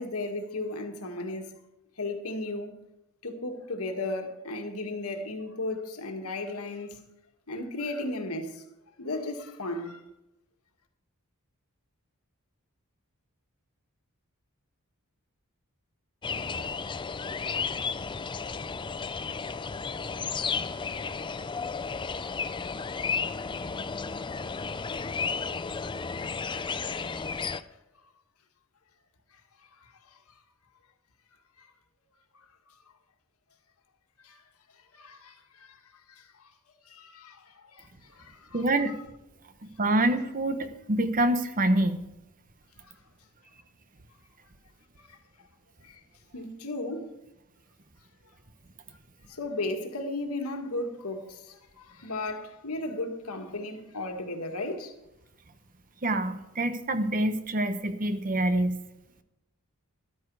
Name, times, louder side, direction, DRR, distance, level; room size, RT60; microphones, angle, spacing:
voice 1, 0.0-1.5 2.0-2.8 3.2-7.0 7.5-8.6 9.0-10.0 23.9-24.0 26.6-27.4 29.3-30.4 31.6-31.7 32.3-32.5 34.2-34.4 34.7-36.5 36.8-38.7 45.0-45.2 45.8-46.0 46.3-47.1 48.3-48.4 49.3-54.9, left 2 dB, 75° left, 1.9 m, -36 dB
sound 1, 16.2-27.6, left 5 dB, 20° left, 0.4 m, -33 dB
voice 2, 38.5-38.9 39.6-42.0 56.0-58.8, right 1 dB, 40° right, 1.0 m, -26 dB
13.0 x 12.0 x 4.8 m
head